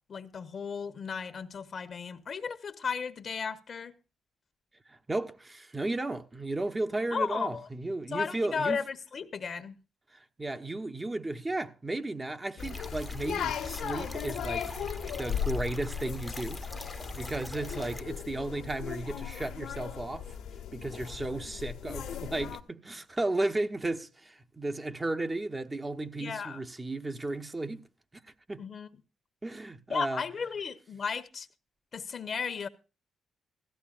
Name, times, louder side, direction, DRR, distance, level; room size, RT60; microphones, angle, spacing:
voice 1, 0.1-3.9 7.1-7.7 8.1-9.8 26.2-26.6 28.6-28.9 29.9-31.5 31.9-32.7, left 6 dB, 55° left, 1.2 m, -34 dB
voice 2, 4.9-8.8 10.4-14.7 15.2-16.6 17.1-20.2 20.7-27.8 28.5-28.7 29.4-30.2, right 2 dB, 25° right, 1.1 m, -34 dB
sound 1, 12.6-22.6, left 9 dB, 80° left, 1.3 m, -37 dB
sound 2, 12.6-18.0, equal, 5° left, 0.9 m, -43 dB
16.5 x 14.0 x 2.5 m
hypercardioid pair, 50°, 0 cm